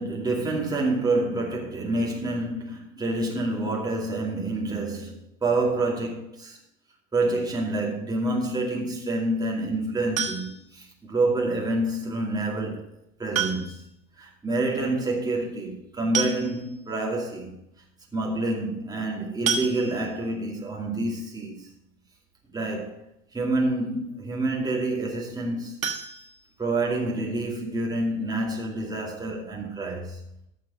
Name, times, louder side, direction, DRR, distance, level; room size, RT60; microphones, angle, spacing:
voice 1, 0.0-6.6 7.1-12.9 13.2-13.8 14.2-17.6 18.1-21.7 22.5-23.0 23.3-25.8 26.6-30.2, right 2 dB, 10° right, 2.5 m, -27 dB
sound 1, 10.2-10.8 12.3-12.4 13.3-14.0 14.3-14.4 14.6-14.7 15.7-15.8 16.1-16.9 17.4-17.5 17.8-18.0 19.5-20.3 25.8-27.0 27.4-27.5 27.9-28.0 28.3-28.4, right 6 dB, 75° right, 1.6 m, -30 dB
13.5 x 4.8 x 6.1 m
figure-of-eight pair, 95°, 41 cm